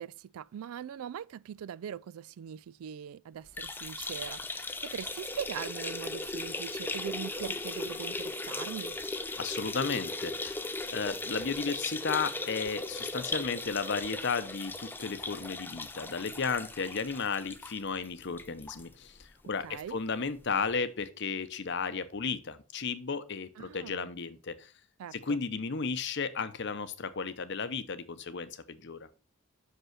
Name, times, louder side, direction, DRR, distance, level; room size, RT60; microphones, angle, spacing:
voice 1, 0.0-9.0 19.6-20.0 23.6-24.1 25.0-25.4, right 8 dB, 75° right, 0.3 m, -41 dB
sound 1, 3.5-18.9 19.2-19.3 19.6-19.7 20.7-20.8, left 2 dB, 10° left, 0.4 m, -38 dB
voice 2, 9.4-10.6 10.9-24.7 25.1-29.1, left 5 dB, 50° left, 0.8 m, -34 dB
6.1 x 5.5 x 5.8 m
head